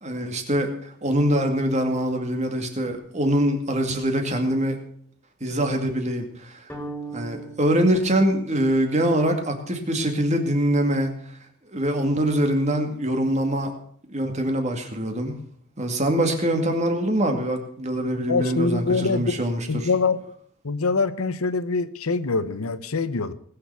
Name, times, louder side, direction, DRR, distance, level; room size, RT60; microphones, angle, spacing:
voice 1, 0.0-4.8 5.4-6.6 7.1-11.2 11.7-13.7 14.1-15.4 15.8-19.9, right 1 dB, 30° right, 2.2 m, -24 dB
sound 1, 6.7-9.0, right 3 dB, 10° left, 3.1 m, -39 dB
voice 2, 18.3-19.3 19.7-20.2 20.6-23.3, left 4 dB, 85° left, 0.9 m, -24 dB
20.0 x 6.9 x 6.9 m
head